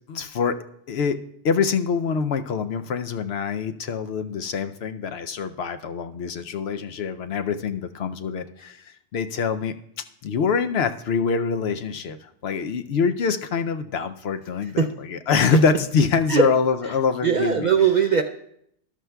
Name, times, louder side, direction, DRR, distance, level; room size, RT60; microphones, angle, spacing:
voice 1, 0.1-0.6 0.9-1.2 1.4-9.7 10.2-17.7, left 5 dB, 65° left, 10 dB, 0.8 m, -25 dB
voice 2, 17.2-18.2, right 6 dB, 55° right, 5 dB, 0.5 m, -19 dB
13.5 x 12.0 x 2.3 m, 0.71 s
omnidirectional pair, 1.2 m